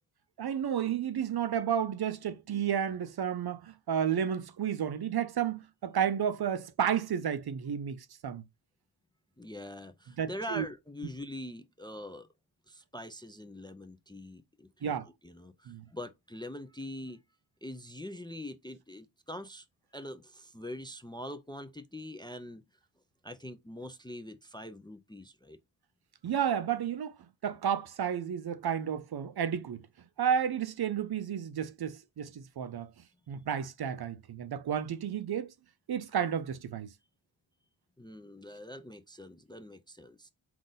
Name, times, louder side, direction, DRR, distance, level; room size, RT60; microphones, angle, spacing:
voice 1, 0.4-8.4 10.2-10.7 14.8-15.1 15.7-15.8 26.2-27.2 27.4-29.8 30.2-32.9 33.3-35.5 35.9-36.9, right 8 dB, 55° right, 0.5 m, -32 dB
voice 2, 9.4-12.3 12.7-17.2 17.6-19.7 19.9-22.6 23.2-25.6 38.0-40.3, left 1 dB, 10° left, 0.4 m, -43 dB
3.8 x 2.5 x 3.8 m
cardioid pair, 60°, 49 cm